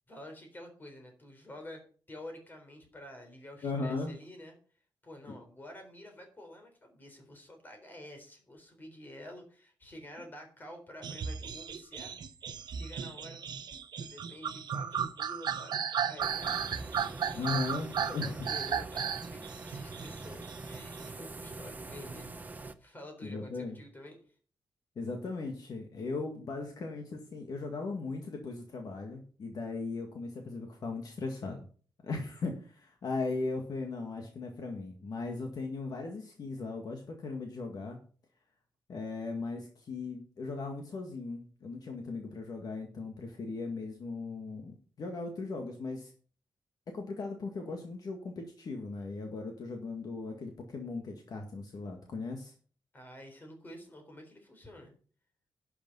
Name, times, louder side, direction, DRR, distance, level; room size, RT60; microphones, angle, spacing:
voice 1, 0.1-1.8 2.1-4.6 5.0-12.2 12.6-13.4 14.0-16.6 17.2-17.5 18.0-24.2 52.9-54.9, left 1 dB, 25° left, 4 dB, 3.8 m, -49 dB
voice 2, 3.6-4.1 5.3-5.4 17.3-18.3 23.2-23.8 25.0-31.7 32.0-38.0 38.9-46.1 46.9-52.5, left 3 dB, 55° left, 3 dB, 1.9 m, -38 dB
sound 1, 11.0-21.1, right 7 dB, 60° right, 1.0 m, -35 dB
sound 2, 16.2-22.7, right 3 dB, 20° right, 0.9 m, -44 dB
11.5 x 7.0 x 5.5 m, 0.41 s
wide cardioid pair, 175°, 8 cm